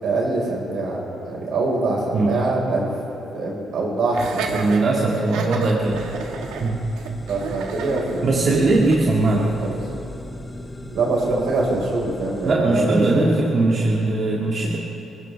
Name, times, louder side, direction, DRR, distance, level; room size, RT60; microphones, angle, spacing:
voice 1, 0.0-2.9 3.3-4.6 7.3-8.6 9.4-9.8 10.9-13.2, right 2 dB, 70° right, -2 dB, 4.7 m, -24 dB
Laughter, 4.1-9.1, right 5 dB, 90° right, 1.5 m, -32 dB
voice 2, 4.5-6.0 6.6-6.9 8.2-9.6 12.4-14.8, right 2 dB, 50° right, -3 dB, 1.9 m, -20 dB
sound 1, 5.8-12.5, left 1 dB, 10° left, 1.4 m, -37 dB
22.5 x 17.5 x 3.4 m, 3.0 s
cardioid pair, 90°, 0 cm